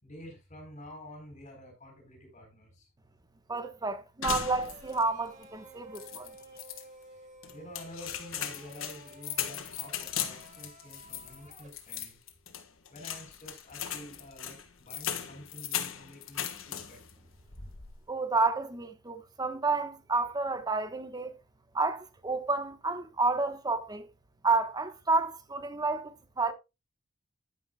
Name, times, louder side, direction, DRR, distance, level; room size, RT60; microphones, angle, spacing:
voice 1, 0.0-2.9 7.5-12.2 12.9-17.2, left 1 dB, 40° left, 4.0 m, -49 dB
voice 2, 3.5-6.3 18.1-21.4 21.7-24.1 24.4-26.5, right 3 dB, 20° right, 1.1 m, -30 dB
sound 1, 4.2-5.1 5.4-5.5 6.0-6.8 7.4-17.1 17.5-18.0, left 9 dB, 85° left, 1.5 m, -38 dB
sound 2, 4.6-11.7, right 1 dB, 40° right, 2.1 m, -53 dB
10.0 x 9.6 x 2.3 m
head